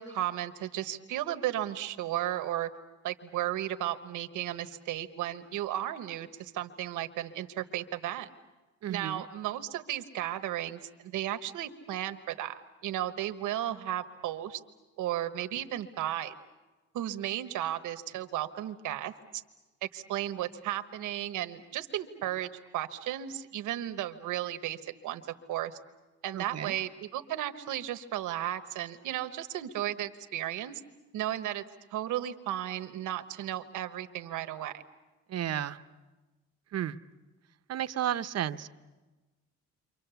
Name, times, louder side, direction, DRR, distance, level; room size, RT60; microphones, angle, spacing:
voice 1, 0.0-2.7 3.0-8.3 8.9-14.6 15.0-16.3 16.9-19.1 19.8-25.2 25.5-25.8 26.2-30.8 31.1-31.6 31.9-34.8, right 12 dB, 90° right, 10 dB, 1.2 m, -34 dB
voice 2, 8.8-9.2 26.3-26.8 35.3-35.8 36.7-37.0 37.7-38.7, right 11 dB, 55° right, 11 dB, 0.8 m, -33 dB
28.5 x 25.0 x 7.0 m, 1.2 s
cardioid pair, 90°, 30 cm